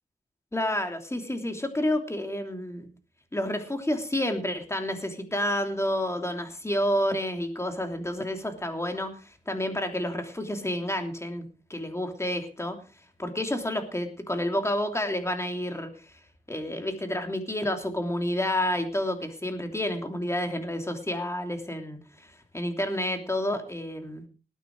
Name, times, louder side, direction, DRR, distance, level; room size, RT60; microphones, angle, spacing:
voice 1, 0.5-2.9 3.3-9.2 9.5-11.4 11.7-12.8 13.2-15.9 16.5-22.0 22.5-24.2, left 1 dB, 15° left, 5 dB, 3.0 m, -29 dB
19.5 x 9.3 x 4.7 m, 0.34 s
wide cardioid pair, 95°, 17 cm